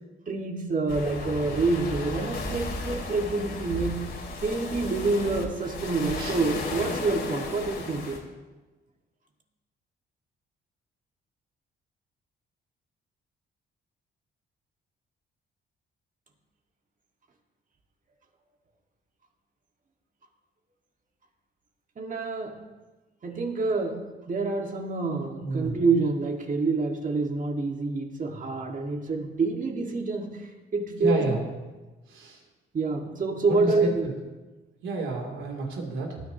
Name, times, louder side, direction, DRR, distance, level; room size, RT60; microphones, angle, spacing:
voice 1, 0.3-4.0 4.4-8.2 22.0-22.6 23.2-31.2 32.7-34.1, right 3 dB, 40° right, 3 dB, 1.9 m, -27 dB
sound 1, 0.9-8.2, left 3 dB, 60° left, 2.7 m, -35 dB
voice 2, 25.4-25.8 31.0-31.4 32.1-32.4 33.4-33.9 34.8-36.2, right 4 dB, 80° right, 0 dB, 3.1 m, -30 dB
19.0 x 10.0 x 3.0 m, 1.2 s
cardioid pair, 90°, 20 cm